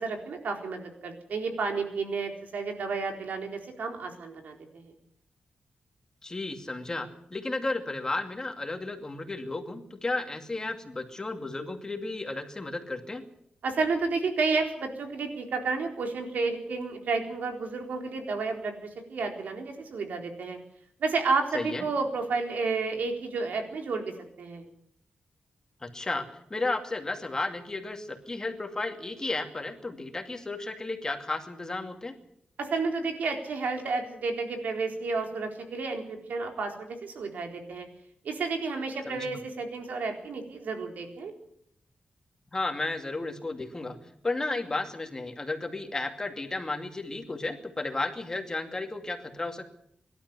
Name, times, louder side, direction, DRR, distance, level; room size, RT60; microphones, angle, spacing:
voice 1, 0.0-4.9 13.6-20.6 21.0-24.6 32.6-37.9 38.2-41.3, right 4 dB, 80° right, 4 dB, 4.1 m, -31 dB
voice 2, 6.2-13.2 21.5-21.9 25.8-26.2 26.5-32.1 39.0-39.3 42.5-44.0 44.2-49.6, left 2 dB, 25° left, 5 dB, 2.4 m, -33 dB
24.5 x 12.0 x 9.8 m, 0.72 s
wide cardioid pair, 140°, 3 cm